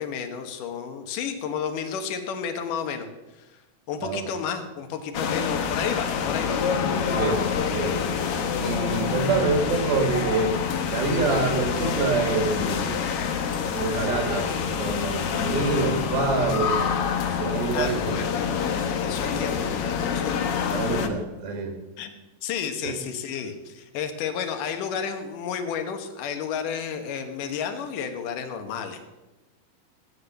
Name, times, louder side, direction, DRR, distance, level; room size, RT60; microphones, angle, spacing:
voice 1, 0.0-3.1 3.3-3.6 3.9-6.6 17.7-18.3 19.0-20.2 22.0-22.1 22.4-29.0, left 7 dB, 65° left, 7 dB, 2.7 m, -31 dB
sound 1, 5.1-21.1, left 7 dB, 85° left, 1.3 m, -27 dB
voice 2, 7.1-8.0 8.6-10.5 10.9-13.0 13.7-16.8 17.4-18.2 20.7-21.8 22.8-22.9, right 4 dB, 80° right, 4 dB, 3.9 m, -26 dB
15.5 x 9.6 x 6.7 m, 1.1 s
omnidirectional pair, 4.3 m